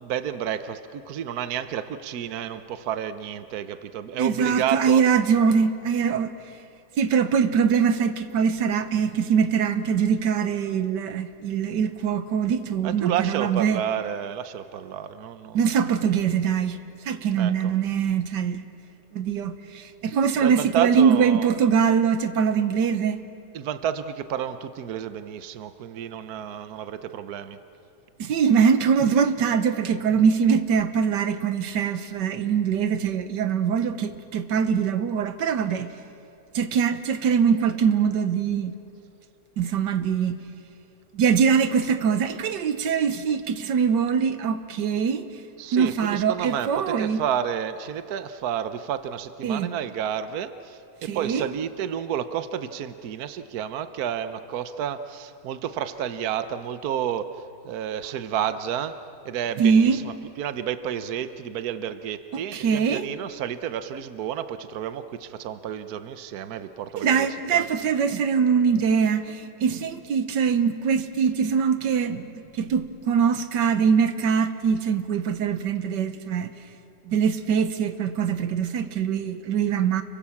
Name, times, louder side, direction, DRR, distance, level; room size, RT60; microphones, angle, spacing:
voice 1, 0.0-5.0 12.8-15.6 17.3-17.7 20.4-21.5 23.5-27.6 45.6-67.3 67.5-67.6, right 9 dB, 65° right, 11 dB, 1.3 m, -30 dB
voice 2, 4.2-6.3 7.0-13.8 15.5-16.8 17.0-18.6 19.1-23.2 28.2-35.9 36.5-38.7 39.6-40.4 41.1-45.3 45.7-47.2 49.4-49.7 51.0-51.5 59.6-60.0 62.3-63.1 67.0-76.5 77.0-80.0, right 6 dB, 85° right, 11 dB, 1.6 m, -23 dB
30.0 x 23.5 x 7.2 m, 2.7 s
omnidirectional pair, 1.8 m